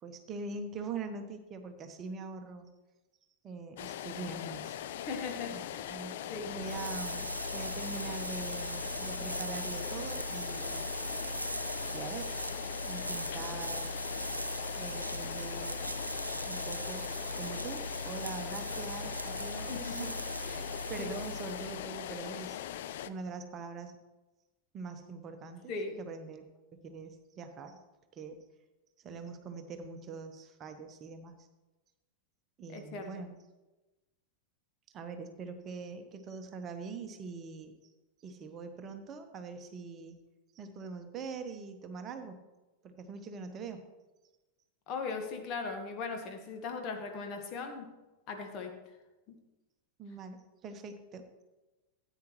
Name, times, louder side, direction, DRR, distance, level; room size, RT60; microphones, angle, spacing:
voice 1, 0.0-2.7 3.4-4.9 5.5-6.2 6.5-10.9 11.9-12.3 12.8-13.9 14.7-15.8 16.4-22.6 23.0-24.0 24.7-26.4 26.7-27.8 28.1-28.4 29.0-31.3 32.6-33.3 34.9-37.7 38.2-40.2 40.5-42.4 42.8-43.8 50.0-51.3, right 4 dB, 30° right, 6 dB, 1.0 m, -43 dB
sound 1, 3.8-23.1, left 11 dB, 55° left, 0.4 m, -41 dB
voice 2, 4.9-6.0 6.3-6.6 19.7-20.1 20.4-21.1 25.7-26.0 32.7-33.3 44.9-47.9 48.3-48.8 49.3-49.4, left 4 dB, 40° left, 5 dB, 1.5 m, -39 dB
sound 2, 6.4-22.2, right 1 dB, 85° right, 0.5 m, -39 dB
14.0 x 9.0 x 3.1 m, 1.1 s
figure-of-eight pair, 90°, 0 cm